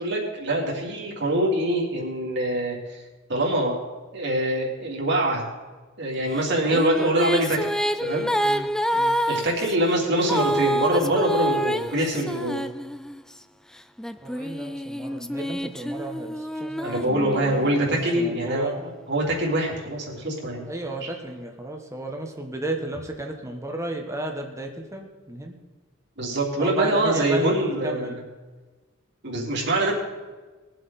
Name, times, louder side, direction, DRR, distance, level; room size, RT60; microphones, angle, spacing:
voice 1, 0.0-2.8 3.3-3.8 4.1-5.5 6.0-7.7 8.0-8.3 9.3-12.6 16.8-20.7 21.0-21.1 26.2-28.2 29.2-29.9, right 1 dB, 55° right, -2 dB, 3.3 m, -24 dB
Female singing, 6.4-13.3 14.0-17.7, equal, 5° left, 0.3 m, -28 dB
voice 2, 8.4-9.2 14.2-18.8 20.7-25.5 26.6-28.2, right 1 dB, 15° right, 2 dB, 1.3 m, -33 dB
21.5 x 7.7 x 4.2 m, 1.3 s
head